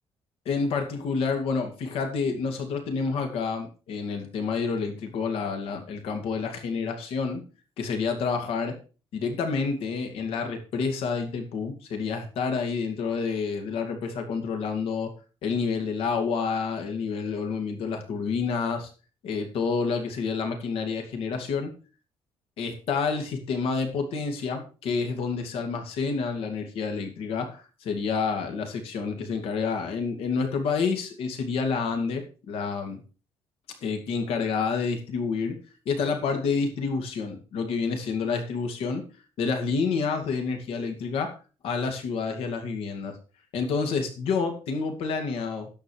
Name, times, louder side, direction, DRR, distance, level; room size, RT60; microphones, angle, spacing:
voice 1, 0.5-7.4 7.8-8.8 9.1-15.1 15.4-18.9 19.2-21.7 22.6-33.0 33.8-35.6 35.9-39.0 39.4-41.4 41.6-43.1 43.5-45.7, left 5 dB, 75° left, 4 dB, 2.5 m, -29 dB
10.5 x 7.4 x 4.8 m, 0.35 s
cardioid pair, 145°, 10 cm